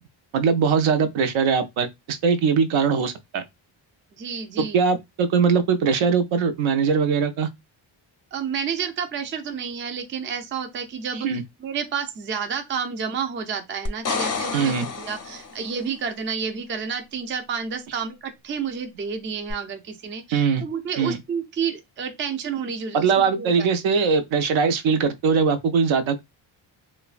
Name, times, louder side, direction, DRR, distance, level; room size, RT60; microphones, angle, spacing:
voice 1, 0.3-3.4 4.6-7.5 11.2-11.4 14.5-14.9 20.3-20.6 21.0-21.2 22.9-26.2, right 5 dB, 80° right, 0.6 m, -21 dB
voice 2, 4.1-4.9 8.3-11.3 11.6-23.7, right 6 dB, 30° right, 0.3 m, -30 dB
sound 1, 13.9-15.8 19.5-19.6, left 4 dB, 35° left, 0.4 m, -29 dB
3.1 x 2.1 x 2.3 m
wide cardioid pair, 150°, 46 cm